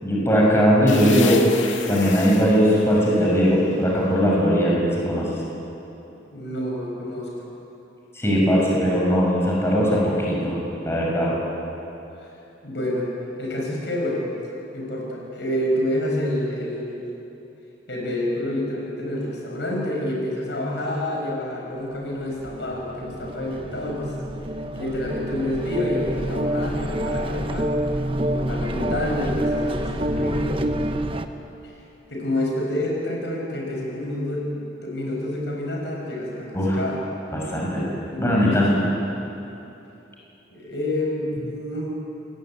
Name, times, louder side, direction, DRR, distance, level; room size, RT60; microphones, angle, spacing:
voice 1, 0.0-1.4 1.9-5.4 8.1-10.6 10.8-11.3 36.5-36.8 37.3-37.8 38.2-38.8, equal, 15° left, -4 dB, 6.3 m, -19 dB
sound 1, 0.9-4.5, left 7 dB, 85° left, 2.3 m, -35 dB
voice 2, 6.1-7.5 12.2-12.3 12.6-13.1 13.4-14.3 14.7-17.1 17.9-24.1 24.8-27.7 28.2-30.7 31.6-31.7 32.1-37.0 37.7-38.8 40.5-41.9, left 1 dB, 65° left, -1 dB, 7.2 m, -28 dB
sound 2, 22.1-31.3, equal, 30° right, 1.1 m, -27 dB
27.5 x 21.5 x 9.4 m, 3.0 s
head